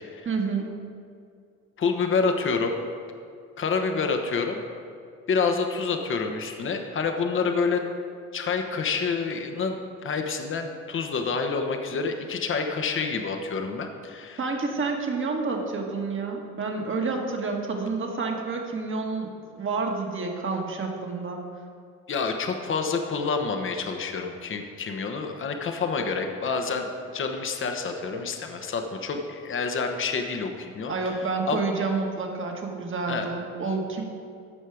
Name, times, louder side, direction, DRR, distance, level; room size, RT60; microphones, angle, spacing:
voice 1, 0.3-0.7 14.4-21.4 30.9-34.0, right 4 dB, 40° right, 2 dB, 1.8 m, -29 dB
voice 2, 1.8-2.7 3.6-4.6 5.3-7.8 8.3-14.4 22.1-26.9 27.1-30.9 31.5-31.6 33.1-33.3, left 5 dB, 40° left, 5 dB, 1.1 m, -28 dB
15.0 x 5.5 x 5.0 m, 2.3 s
supercardioid pair, 80°, 32 cm